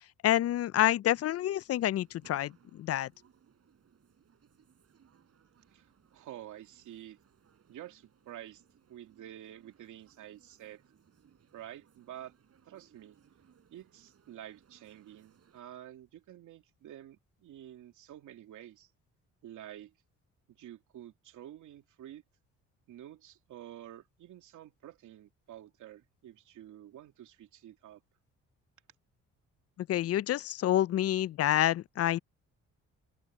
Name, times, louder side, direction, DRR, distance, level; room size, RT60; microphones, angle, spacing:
voice 1, 0.2-3.1 29.8-32.2, left 13 dB, 55° left, 0.4 m, -28 dB
sound 1, 1.4-15.6, right 8 dB, 55° right, 6.7 m, -66 dB
voice 2, 5.7-7.2 7.7-8.6 8.9-10.8 11.5-12.3 12.7-13.2 13.7-18.9 19.4-19.9 20.5-22.2 22.9-28.0, right 12 dB, 80° right, 2.9 m, -49 dB
open air
cardioid pair, 90°, 30 cm